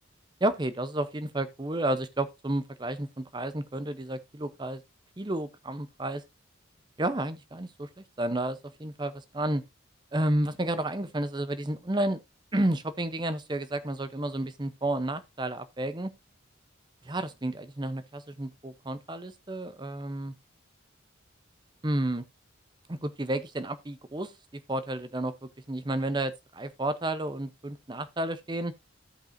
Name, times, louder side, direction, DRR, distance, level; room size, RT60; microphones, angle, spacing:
voice 1, 0.4-4.8 5.2-6.2 7.0-9.6 10.1-12.2 12.5-16.1 17.0-20.3 21.8-22.2 22.9-24.3 24.7-28.7, right 1 dB, 25° right, 0.7 m, -31 dB
14.5 x 5.4 x 2.6 m
head